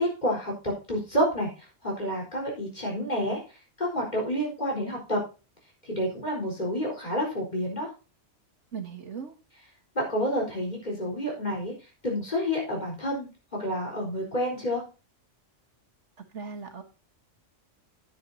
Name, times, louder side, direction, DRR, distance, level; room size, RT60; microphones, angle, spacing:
voice 1, 0.0-1.5 1.8-3.4 3.8-5.2 5.8-7.9 9.9-11.7 12.0-13.3 13.6-14.8, equal, 35° left, -1 dB, 4.4 m, -29 dB
voice 2, 8.7-9.4 16.3-16.8, right 6 dB, 70° right, 6 dB, 1.8 m, -38 dB
10.0 x 9.9 x 2.8 m, 0.31 s
omnidirectional pair, 1.3 m